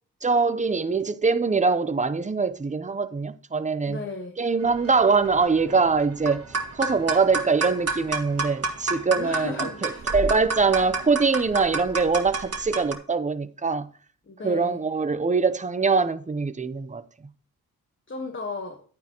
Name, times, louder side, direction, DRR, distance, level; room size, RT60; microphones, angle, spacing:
voice 1, 0.2-4.0 4.4-13.9 14.4-17.0, right 4 dB, 20° right, 0.7 m, -23 dB
voice 2, 3.8-4.3 9.1-10.1 14.3-14.8 18.1-18.8, left 3 dB, 35° left, 1.4 m, -35 dB
sound 1, 4.6-12.9, right 3 dB, 40° right, 1.9 m, -31 dB
11.0 x 9.3 x 3.0 m
cardioid pair, 95°, 37 cm